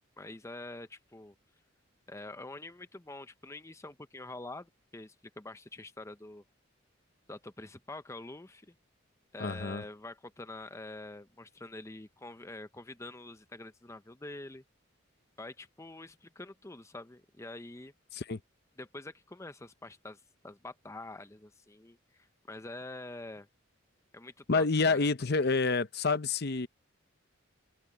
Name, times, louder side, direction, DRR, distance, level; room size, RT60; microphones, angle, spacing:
voice 1, 0.2-1.3 2.1-6.4 7.3-8.7 9.3-14.6 15.4-17.9 18.8-23.5 24.1-25.1, left 2 dB, 15° left, 0.6 m, -46 dB
voice 2, 9.4-9.8 18.1-18.4 24.5-26.7, left 4 dB, 50° left, 0.8 m, -28 dB
head